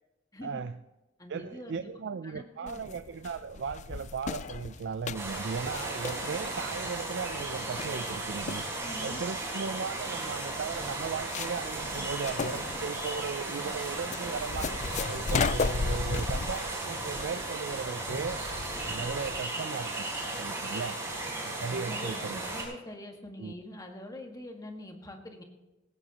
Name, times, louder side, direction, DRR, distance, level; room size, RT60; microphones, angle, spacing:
voice 1, 0.4-0.7 1.3-18.4 18.8-20.1 20.4-21.0 21.4-22.4 23.4-23.5, right 5 dB, 65° right, 11 dB, 0.4 m, -37 dB
voice 2, 1.2-2.9 8.8-9.2 21.7-25.4, left 1 dB, 20° left, 3 dB, 1.7 m, -44 dB
sound 1, 2.7-19.4, left 4 dB, 40° left, 0.4 m, -36 dB
sound 2, 5.1-22.6, right 2 dB, 15° right, 4.8 m, -35 dB
19.0 x 16.0 x 3.0 m, 1.1 s
head